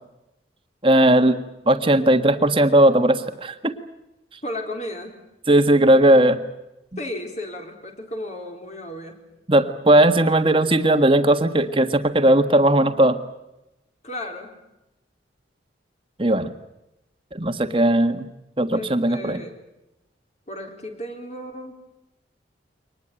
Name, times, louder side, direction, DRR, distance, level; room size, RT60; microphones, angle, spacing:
voice 1, 0.8-1.4 1.7-3.7 5.5-6.4 9.5-13.2 16.2-16.5 17.3-18.3 18.6-19.4, right 1 dB, 30° right, 8 dB, 1.6 m, -17 dB
voice 2, 4.4-5.2 7.0-9.2 14.0-14.6 18.7-19.6 20.5-21.8, left 1 dB, 40° left, 3 dB, 4.1 m, -34 dB
24.0 x 20.0 x 9.1 m, 0.92 s
head